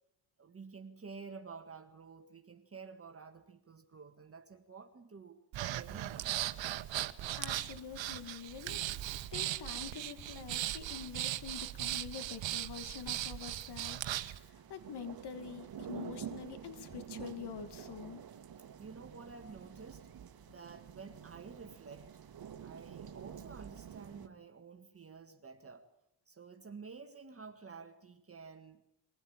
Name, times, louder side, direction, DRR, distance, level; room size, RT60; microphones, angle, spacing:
voice 1, 0.4-5.4 5.7-6.4 18.8-20.1 20.5-22.1 22.6-25.9 26.3-28.8, right 5 dB, 30° right, 5 dB, 1.9 m, -51 dB
Breathing, 5.5-14.4, right 14 dB, 75° right, 1.2 m, -38 dB
sound 1, 6.3-24.3, right 8 dB, 50° right, 1.8 m, -51 dB
voice 2, 7.4-8.8 9.3-18.2, left 7 dB, 60° left, 10 dB, 2.3 m, -46 dB
23.0 x 16.0 x 8.9 m, 0.80 s
cardioid pair, 95°, 45 cm